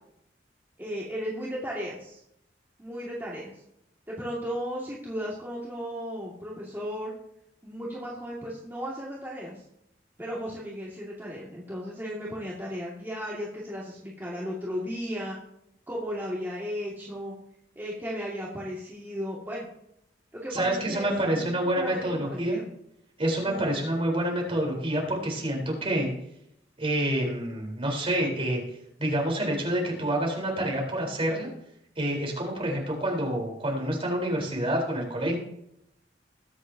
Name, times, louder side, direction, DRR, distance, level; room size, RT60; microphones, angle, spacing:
voice 1, 0.8-2.2 2.8-3.5 4.1-7.1 7.6-9.6 10.2-15.4 15.9-17.3 17.8-19.7 20.4-21.5 21.8-22.7 23.4-23.7, equal, 10° right, -6 dB, 2.2 m, -35 dB
voice 2, 20.5-22.6 23.2-26.1 26.8-28.6 29.0-31.5 32.0-35.4, right 1 dB, 35° right, -1 dB, 4.1 m, -27 dB
21.0 x 8.2 x 2.8 m, 0.76 s
head